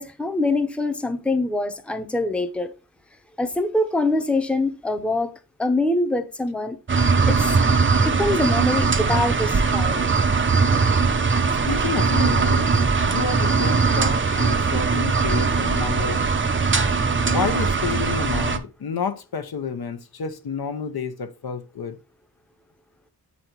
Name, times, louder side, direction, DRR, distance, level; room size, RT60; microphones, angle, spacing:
voice 1, 0.0-2.7 3.4-5.3 5.6-6.8 7.3-7.4 8.0-10.1, left 2 dB, 5° left, 0.8 m, -24 dB
sound 1, 6.9-18.6, right 4 dB, 30° right, 0.7 m, -20 dB
voice 2, 11.5-16.2 17.2-22.0, left 6 dB, 70° left, 0.9 m, -30 dB
7.9 x 4.2 x 4.5 m
wide cardioid pair, 130°, 39 cm